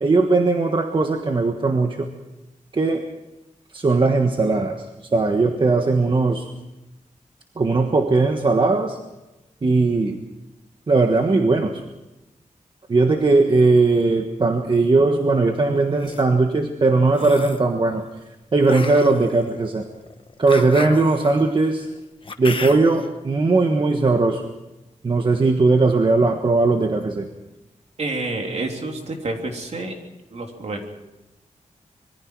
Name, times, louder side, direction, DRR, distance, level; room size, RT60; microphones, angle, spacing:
voice 1, 0.0-2.1 2.7-3.0 3.7-4.8 5.1-6.5 7.6-9.0 9.6-10.2 10.9-11.7 12.9-18.0 18.5-19.8 20.4-21.9 22.4-24.4 25.0-27.3, right 3 dB, 40° right, 4 dB, 1.4 m, -18 dB
sound 1, 15.8-16.2 17.1-17.7 18.6-23.1, left 4 dB, 40° left, 1.2 m, -34 dB
voice 2, 28.0-29.9 30.3-30.9, right 2 dB, 60° right, 2 dB, 3.4 m, -28 dB
25.5 x 22.5 x 4.7 m, 0.99 s
wide cardioid pair, 160°, 13 cm